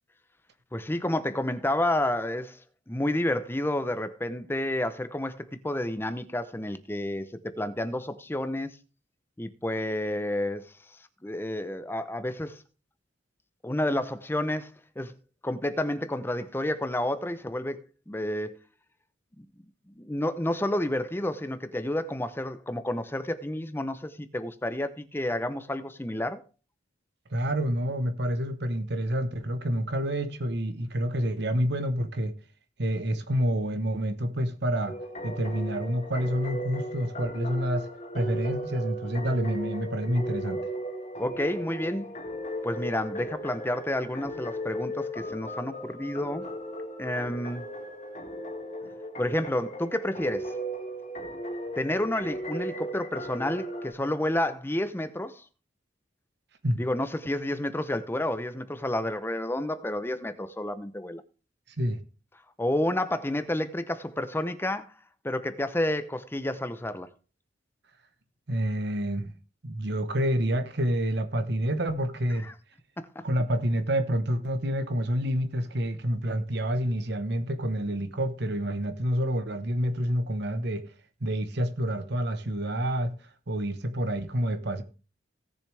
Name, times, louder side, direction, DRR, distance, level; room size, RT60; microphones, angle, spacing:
voice 1, 0.7-2.6 2.9-8.8 9.4-10.7 11.2-12.6 13.6-15.1 15.4-18.6 19.4-19.5 19.9-26.4 41.2-42.1 42.6-46.4 47.0-47.6 49.2-50.5 51.8-55.4 56.8-61.2 62.6-64.9 65.2-67.1 72.4-72.5 73.0-73.2, left 1 dB, 10° left, 0.7 m, -30 dB
voice 2, 27.3-32.3 32.8-35.0 35.2-37.9 38.1-40.6 56.6-56.8 61.8-62.0 68.5-69.3 69.6-72.5 73.2-80.8 81.2-83.1 83.5-84.8, equal, 60° right, 1.1 m, -28 dB
sound 1, 34.9-53.9, equal, 40° left, 2.0 m, -36 dB
17.5 x 6.8 x 3.4 m
head